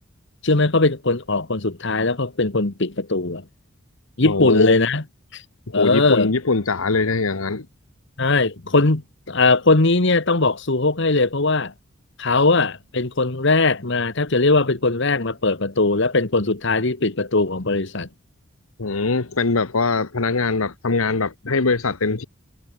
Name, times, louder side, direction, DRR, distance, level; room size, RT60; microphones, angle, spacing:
voice 1, 0.4-3.4 4.2-5.0 5.3-5.4 5.7-6.3 8.2-11.7 12.2-18.1, left 3 dB, 60° left, 1.5 m, -20 dB
voice 2, 4.2-4.8 5.7-7.6 18.8-22.2, left 3 dB, 80° left, 1.2 m, -22 dB
head